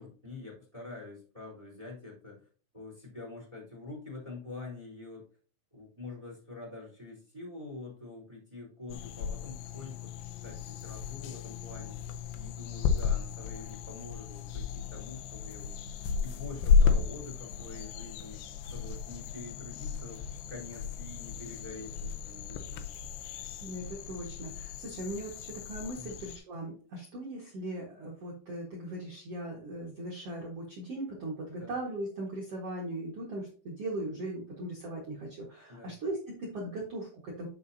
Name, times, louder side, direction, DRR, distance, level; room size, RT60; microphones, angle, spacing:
voice 1, 0.0-2.4 2.7-5.2 5.7-10.1 10.4-12.0 12.3-15.7 16.2-18.4 18.7-22.9 25.9-26.2 31.6-31.7 35.7-35.9, left 3 dB, 10° right, -1 dB, 3.1 m, -46 dB
sound 1, 8.9-26.4, left 6 dB, 85° left, 3.4 m, -33 dB
voice 2, 23.6-37.5, right 1 dB, 90° right, -3 dB, 1.3 m, -39 dB
11.0 x 5.6 x 2.8 m, 0.42 s
omnidirectional pair, 5.6 m